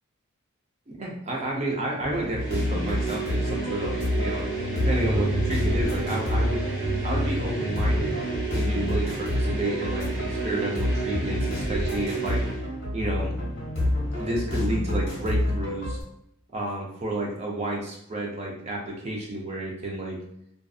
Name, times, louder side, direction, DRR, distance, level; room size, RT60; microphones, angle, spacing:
voice 1, 0.9-6.6 7.0-8.2 8.5-12.4 12.9-13.3 14.2-16.0 16.5-20.2, right 1 dB, 30° right, -1 dB, 0.5 m, -31 dB
sound 1, 2.0-16.0, left 1 dB, 55° left, 1.1 m, -28 dB
sound 2, 2.3-12.6, right 5 dB, 50° right, 1.0 m, -33 dB
sound 3, 4.9-11.8, right 1 dB, ahead, 1.2 m, -34 dB
2.5 x 2.5 x 2.3 m, 0.75 s
head